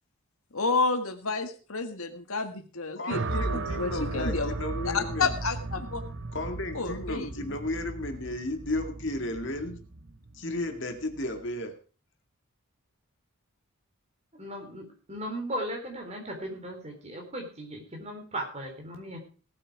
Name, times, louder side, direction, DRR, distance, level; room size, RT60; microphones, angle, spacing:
voice 1, 0.5-4.5 4.9-6.0 6.7-7.3, left 4 dB, 75° left, 7 dB, 1.7 m, -30 dB
voice 2, 3.0-5.3 6.3-9.8 10.3-11.7, left 1 dB, 55° left, 5 dB, 2.1 m, -34 dB
sound 1, 3.1-11.3, right 2 dB, 55° right, 0.9 m, -36 dB
voice 3, 14.3-19.2, right 1 dB, 30° right, 2 dB, 3.9 m, -37 dB
18.0 x 8.9 x 4.7 m, 0.37 s
head